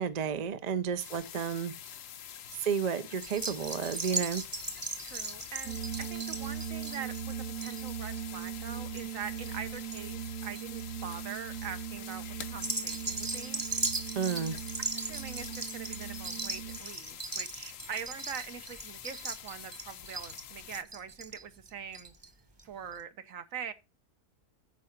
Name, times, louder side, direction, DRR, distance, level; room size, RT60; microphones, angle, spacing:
voice 1, 0.0-1.7 2.6-4.4 14.2-14.5, right 7 dB, 50° right, 0.5 m, -31 dB
sound 1, 1.0-20.8, left 9 dB, 65° left, 1.0 m, -46 dB
sound 2, 3.2-10.0 10.3-10.8 11.3-11.6 12.5-22.3 22.6-22.7 22.9-23.0, right 3 dB, 20° right, 0.9 m, -38 dB
voice 2, 5.0-13.7 15.1-22.1 22.6-23.7, right 7 dB, 65° right, 1.2 m, -43 dB
sound 3, 5.7-16.8, right 10 dB, 80° right, 1.4 m, -40 dB
9.6 x 4.8 x 5.6 m
omnidirectional pair, 1.6 m